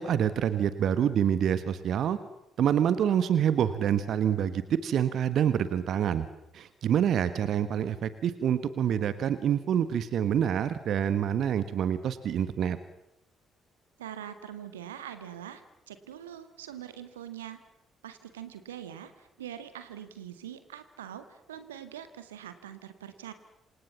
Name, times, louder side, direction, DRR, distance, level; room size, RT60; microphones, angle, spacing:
voice 1, 0.0-2.2 2.6-6.2 6.5-12.8, right 9 dB, 55° right, 13 dB, 1.4 m, -26 dB
voice 2, 14.0-15.6 15.9-17.6 18.0-23.3, right 10 dB, 80° right, 10 dB, 1.8 m, -43 dB
27.5 x 26.0 x 7.3 m, 0.87 s
figure-of-eight pair, 45°, 0 cm